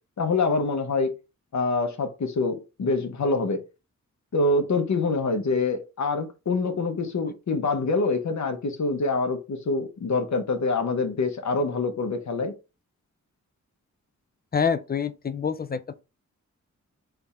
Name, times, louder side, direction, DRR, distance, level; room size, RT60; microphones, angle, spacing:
voice 1, 0.2-1.1 1.5-3.6 4.3-12.5, left 3 dB, 65° left, 1.0 m, -25 dB
voice 2, 14.5-16.0, left 6 dB, 30° left, 0.5 m, -27 dB
3.6 x 3.4 x 4.2 m
wide cardioid pair, 115°, 30 cm